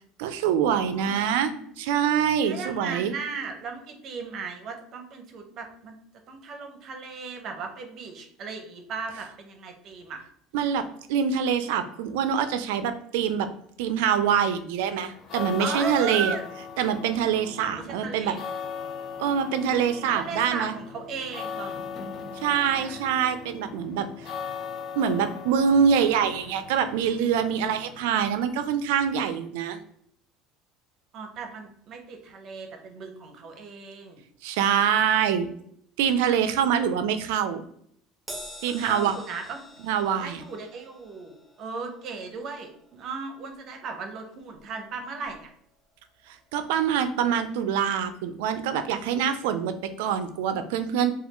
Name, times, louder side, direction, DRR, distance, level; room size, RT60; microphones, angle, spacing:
voice 1, 0.2-3.1 10.5-13.5 13.8-16.3 16.8-18.4 19.2-20.7 22.4-24.1 25.0-29.8 34.4-35.5 36.0-37.6 38.6-39.1 39.8-40.4 46.5-51.1, right 8 dB, 85° right, 10 dB, 0.3 m, -25 dB
voice 2, 0.9-1.7 2.4-5.9 6.3-10.2 15.6-16.4 17.6-18.4 20.1-21.8 22.6-23.0 31.1-34.2 36.7-36.8 38.7-39.6 40.1-45.5, right 5 dB, 50° right, 5 dB, 0.7 m, -36 dB
sound 1, 15.1-28.6, left 6 dB, 45° left, 0.6 m, -39 dB
Crash cymbal, 38.3-44.9 45.2-45.5 46.5-46.6, equal, 10° right, 1.0 m, -47 dB
3.2 x 2.3 x 3.0 m, 0.67 s
supercardioid pair, 110°, 0 cm